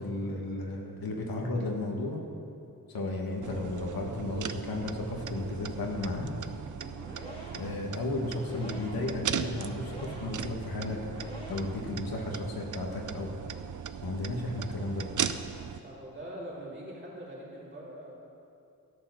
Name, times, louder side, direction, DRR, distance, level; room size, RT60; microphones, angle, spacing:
voice 1, 0.0-2.2 2.9-6.3 7.5-11.0 11.5-13.3 14.0-15.0, left 2 dB, 85° left, 0 dB, 1.5 m, -34 dB
sound 1, 3.4-15.8, right 8 dB, 60° right, 0.5 m, -38 dB
sound 2, 6.7-11.9, equal, 15° left, 2.3 m, -47 dB
voice 2, 7.1-7.5 15.5-18.2, right 1 dB, 30° right, -5 dB, 3.1 m, -44 dB
12.5 x 8.7 x 6.3 m, 2.7 s
wide cardioid pair, 115°, 35 cm